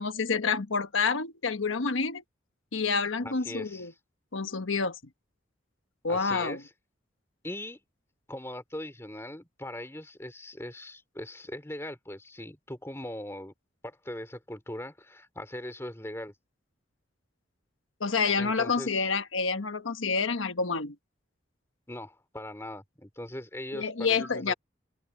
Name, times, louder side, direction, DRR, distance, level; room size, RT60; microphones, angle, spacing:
voice 1, 0.0-2.2 2.7-3.9 4.3-5.0 6.0-6.6 18.0-20.9 23.7-24.5, left 5 dB, 90° left, 1.2 m, -28 dB
voice 2, 3.2-3.9 6.1-6.7 7.4-7.8 8.3-13.5 13.8-16.3 18.4-19.1 21.9-24.5, left 1 dB, 15° left, 2.7 m, -40 dB
open air
head